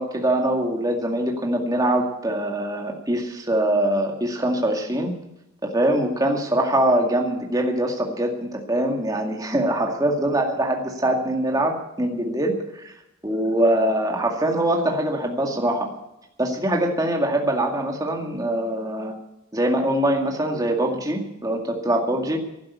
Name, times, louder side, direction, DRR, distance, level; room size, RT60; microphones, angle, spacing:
voice 1, 0.0-5.1 5.7-12.6 12.9-13.0 13.2-15.9 16.4-19.1 19.5-22.4, right 1 dB, 15° right, 1 dB, 2.1 m, -23 dB
11.5 x 11.5 x 8.4 m, 0.89 s
head